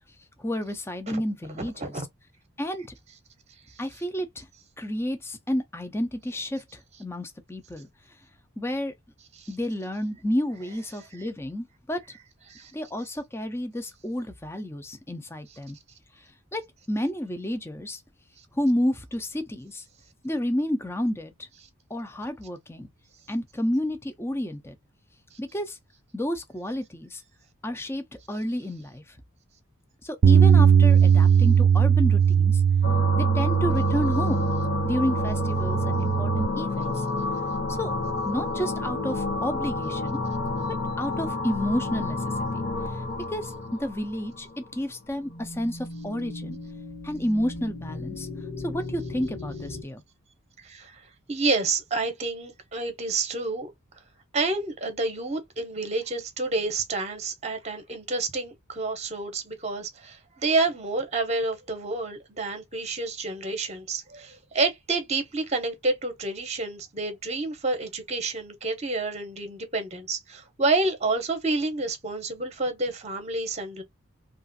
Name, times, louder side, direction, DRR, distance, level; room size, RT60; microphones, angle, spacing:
voice 1, 0.4-1.9 2.6-2.9 3.8-4.4 4.8-7.9 8.6-8.9 9.5-12.0 12.7-15.8 16.5-16.6 16.9-18.0 18.6-19.8 20.2-21.3 21.9-22.9 23.3-24.8 25.4-25.8 26.1-27.2 27.6-29.0 30.0-32.6 33.1-34.5 34.8-37.0 37.8-37.9 38.3-40.2 41.0-42.2 43.3-43.5 43.8-46.6 47.0-48.3 48.6-50.0, equal, 10° left, 0.5 m, -30 dB
voice 2, 1.6-2.0 9.3-9.5 10.9-11.0 12.5-12.7 25.3-25.4 50.6-51.0 51.3-53.7 54.3-73.8, right 3 dB, 30° right, 0.8 m, -29 dB
Bass guitar, 30.2-36.5, right 7 dB, 50° right, 0.3 m, -19 dB
sound 1, 32.8-44.8 45.2-49.8, left 3 dB, 45° left, 0.9 m, -31 dB
3.0 x 2.4 x 2.6 m
head